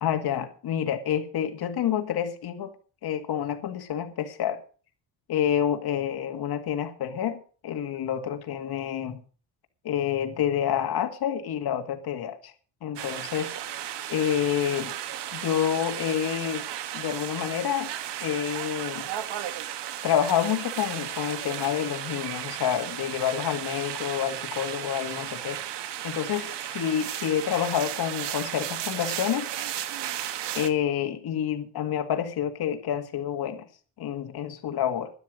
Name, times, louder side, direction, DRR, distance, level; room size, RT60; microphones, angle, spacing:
voice 1, 0.0-2.7 3.0-4.6 5.3-9.2 9.8-12.5 12.8-13.6 14.1-14.9 15.3-16.7 16.9-17.9 18.2-19.1 20.0-25.6 26.0-29.5 30.5-33.6 34.0-35.1, left 9 dB, 65° left, 2.1 m, -28 dB
sound 1, 13.0-30.7, right 11 dB, 80° right, 1.4 m, -34 dB
12.5 x 10.5 x 6.4 m
cardioid pair, 120°, 41 cm